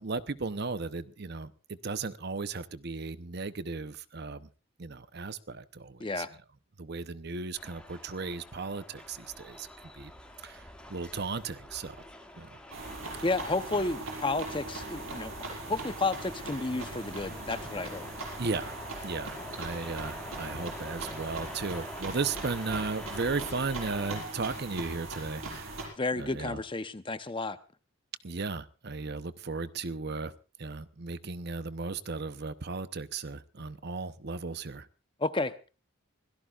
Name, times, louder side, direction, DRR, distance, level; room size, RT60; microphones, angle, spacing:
voice 1, 0.0-4.5 4.8-6.3 6.8-10.1 10.4-12.0 12.4-12.6 18.4-18.7 19.0-25.7 26.2-26.6 28.2-30.3 30.6-34.9, right 4 dB, 50° right, 13 dB, 0.8 m, -36 dB
voice 2, 6.0-6.3 13.2-18.1 26.0-27.6 35.2-35.5, left 3 dB, 25° left, 11 dB, 0.8 m, -32 dB
sound 1, 7.6-24.3, left 1 dB, 5° left, 2.1 m, -46 dB
sound 2, 12.7-25.9, right 2 dB, 85° right, 6.2 m, -40 dB
25.5 x 17.0 x 2.4 m, 0.33 s
head